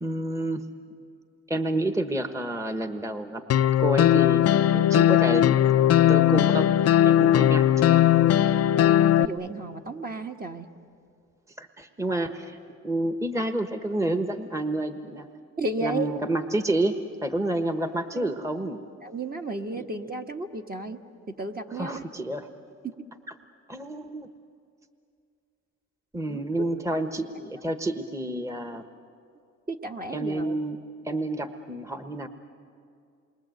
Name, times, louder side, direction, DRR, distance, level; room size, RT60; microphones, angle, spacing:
voice 1, 0.0-0.6 1.5-3.4 3.8-5.6 6.1-6.7 7.0-8.0 11.6-12.6 12.8-15.3 15.8-17.0 17.2-18.8 21.7-22.5 23.7-24.3 26.1-28.8 30.1-32.3, right 1 dB, 10° right, 7 dB, 1.2 m, -29 dB
sound 1, 3.5-9.3, left 11 dB, 55° left, 0.6 m, -19 dB
voice 2, 8.8-10.7 15.6-16.1 18.1-18.3 19.0-21.0 21.3-22.0 22.8-22.9 26.3-26.7 29.7-30.6, right 2 dB, 30° right, 3 dB, 1.4 m, -33 dB
28.0 x 23.0 x 7.9 m, 2.4 s
cardioid pair, 90°, 30 cm